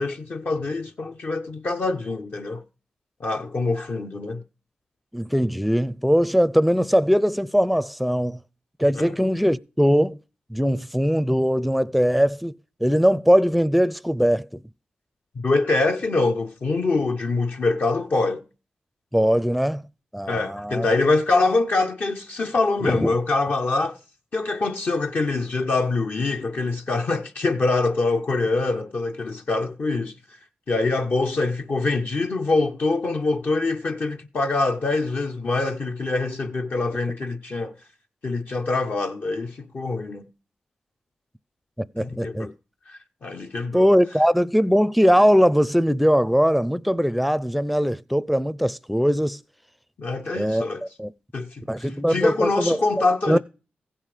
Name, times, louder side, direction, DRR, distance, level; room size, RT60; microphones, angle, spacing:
voice 1, 0.0-2.6 3.2-4.4 8.9-9.2 15.4-18.4 20.3-24.0 24.3-30.1 30.7-37.7 38.2-40.3 42.0-42.5 42.9-43.8 50.0-50.8 51.3-53.4, left 3 dB, 60° left, 0.8 m, -24 dB
voice 2, 5.1-8.4 8.8-10.2 10.5-14.5 19.1-19.8 20.1-20.9 22.8-23.2 41.8-42.5 43.7-49.4 50.4-50.7 51.0-51.1 51.7-53.4, equal, ahead, 0.5 m, -20 dB
15.5 x 5.6 x 4.8 m
cardioid pair, 55°, 4 cm